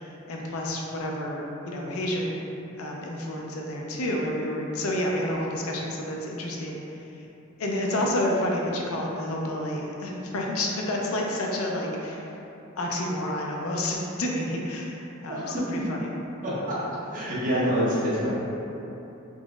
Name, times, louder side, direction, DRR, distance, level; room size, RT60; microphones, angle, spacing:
voice 1, 0.3-2.5 2.8-6.8 7.6-12.3 12.8-16.1, left 1 dB, 90° left, -1 dB, 0.5 m, -29 dB
voice 2, 15.3-15.6 16.4-16.8 17.1-18.3, equal, 40° right, -8 dB, 0.9 m, -26 dB
3.8 x 3.0 x 2.3 m, 2.9 s
head